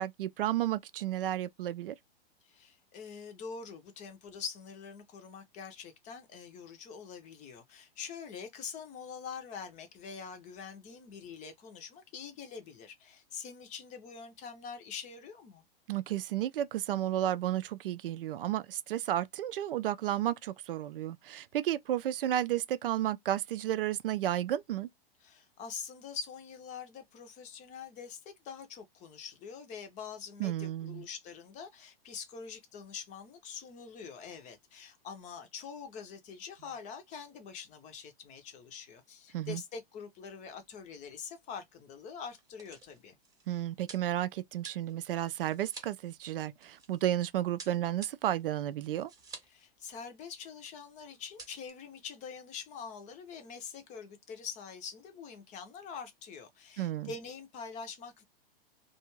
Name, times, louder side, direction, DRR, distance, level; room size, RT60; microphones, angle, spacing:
voice 1, 0.0-1.9 15.9-24.9 30.4-31.1 39.3-39.6 43.5-49.1 56.8-57.1, right 12 dB, 65° right, 0.4 m, -32 dB
voice 2, 2.4-15.6 25.2-43.2 49.4-58.2, left 6 dB, 25° left, 0.6 m, -45 dB
sound 1, 40.7-40.8 41.1-41.2 42.0-47.1 47.6-49.6 49.9-50.0 50.2-50.8 51.1-51.7, right 4 dB, 10° right, 0.9 m, -51 dB
2.4 x 2.3 x 2.9 m
hypercardioid pair, 115°, 30 cm